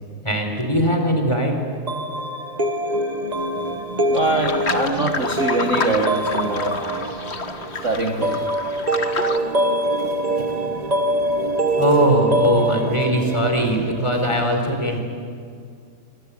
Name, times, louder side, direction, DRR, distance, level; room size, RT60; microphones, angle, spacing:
voice 1, 0.2-1.6 11.8-15.0, equal, 15° left, 3 dB, 4.0 m, -20 dB
sound 1, 1.9-14.5, right 1 dB, 25° right, 1.1 m, -24 dB
sound 2, 4.1-9.4, left 4 dB, 35° left, 1.6 m, -29 dB
voice 2, 4.1-6.8 7.8-8.5, right 3 dB, 40° right, 4 dB, 1.7 m, -23 dB
27.5 x 24.0 x 8.7 m, 2.3 s
omnidirectional pair, 2.1 m